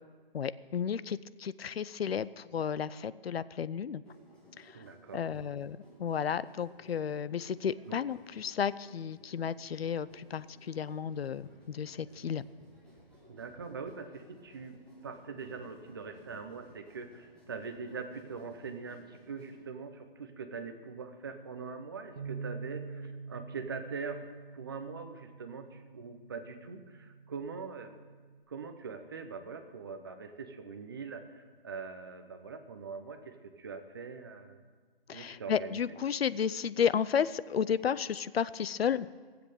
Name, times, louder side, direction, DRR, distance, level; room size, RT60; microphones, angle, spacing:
voice 1, 0.3-4.0 4.6-4.8 5.1-12.5 35.1-39.1, left 7 dB, 80° left, 17 dB, 0.6 m, -33 dB
sound 1, 4.0-19.6, right 1 dB, 5° left, 0.8 m, -59 dB
voice 2, 4.7-5.2 7.9-8.0 13.3-24.3 24.5-28.0 28.5-31.2 31.6-34.6 35.1-35.8, right 5 dB, 25° right, 7 dB, 0.6 m, -42 dB
Bass guitar, 22.2-28.4, right 5 dB, 45° right, 1.7 m, -46 dB
15.5 x 7.8 x 6.7 m, 1.5 s
hypercardioid pair, 165°, 30 cm